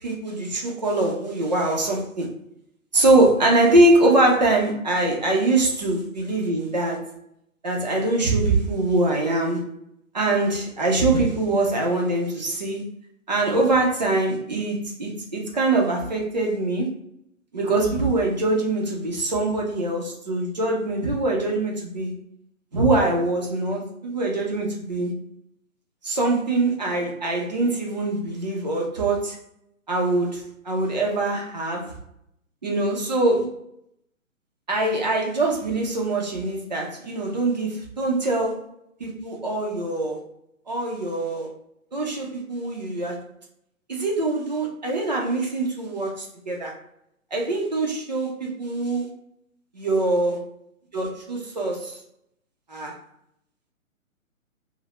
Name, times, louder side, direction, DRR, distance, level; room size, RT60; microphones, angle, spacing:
voice 1, 0.0-2.4 2.9-7.1 7.6-9.7 10.1-12.9 13.3-16.9 17.5-22.1 22.7-25.1 26.0-29.4 29.9-31.9 32.6-33.6 34.7-38.6 39.0-40.2 40.7-41.5 41.9-43.2 43.9-46.7 47.3-49.1 49.7-50.4 50.9-52.0 52.7-52.9, right 2 dB, 35° right, -1 dB, 0.5 m, -23 dB
2.8 x 2.0 x 3.0 m, 0.75 s
hypercardioid pair, 165°, 42 cm